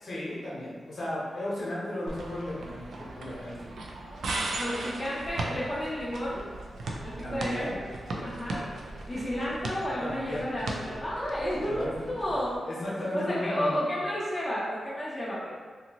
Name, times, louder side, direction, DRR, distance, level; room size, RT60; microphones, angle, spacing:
voice 1, 0.0-3.7 7.2-7.8 8.1-8.3 10.0-10.9 11.6-12.1 12.6-13.8, left 1 dB, 60° left, -7 dB, 0.9 m, -35 dB
sound 1, 2.1-12.6, right 2 dB, 85° right, 0.4 m, -38 dB
voice 2, 4.6-6.5 7.0-7.8 8.2-8.7 9.1-12.6 13.1-15.5, equal, 20° left, -8 dB, 0.6 m, -32 dB
2.7 x 2.6 x 2.8 m, 1.5 s
wide cardioid pair, 135°, 0 cm